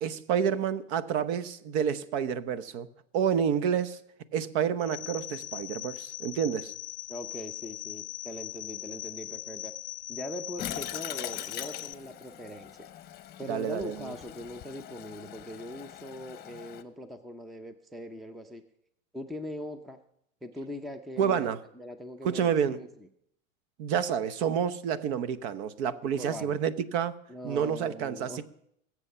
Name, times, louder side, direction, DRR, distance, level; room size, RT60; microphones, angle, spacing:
voice 1, 0.0-2.9 3.1-4.0 4.3-6.7 13.5-14.1 21.2-21.6 22.2-22.8 23.8-27.2 27.4-28.4, right 8 dB, 55° right, 15 dB, 1.0 m, -29 dB
sound 1, 4.8-11.9, left 16 dB, 80° left, 0.6 m, -40 dB
voice 2, 7.1-9.7 10.1-12.9 13.4-18.6 19.1-20.0 20.4-22.9 26.0-26.6 27.3-28.4, equal, ahead, 10 dB, 0.5 m, -41 dB
Toilet flush, 10.6-16.8, left 11 dB, 25° left, 0.9 m, -42 dB
21.5 x 7.3 x 5.6 m, 0.74 s
hypercardioid pair, 125°, 40 cm